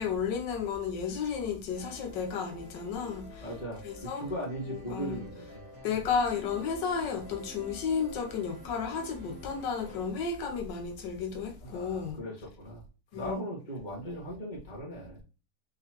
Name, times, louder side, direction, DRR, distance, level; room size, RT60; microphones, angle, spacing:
voice 1, 0.0-3.5 3.8-4.2 4.7-5.2 5.8-12.2 13.1-13.4, left 6 dB, 85° left, 1.4 m, -33 dB
sound 1, 1.7-10.1, left 1 dB, 5° right, 1.8 m, -49 dB
voice 2, 3.4-3.8 4.1-5.6 11.6-12.8 13.1-15.2, equal, 25° left, 1.6 m, -38 dB
3.9 x 3.8 x 2.9 m
omnidirectional pair, 1.9 m